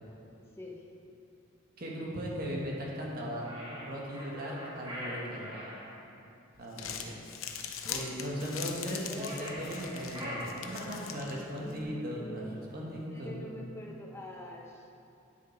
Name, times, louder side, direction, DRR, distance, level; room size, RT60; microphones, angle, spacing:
voice 1, 1.8-3.5 3.9-5.5 6.6-7.1 7.9-13.4, equal, 45° right, -3 dB, 1.6 m, -38 dB
sound 1, 3.4-5.8 9.0-11.2, equal, 25° right, 2.0 m, -42 dB
Crumpling crinkling, 6.6-11.8, left 7 dB, 80° left, 0.7 m, -42 dB
voice 2, 7.8-8.2 11.3-12.7 13.1-14.7, left 1 dB, 10° left, -1 dB, 0.8 m, -45 dB
9.9 x 6.4 x 4.5 m, 2.6 s
head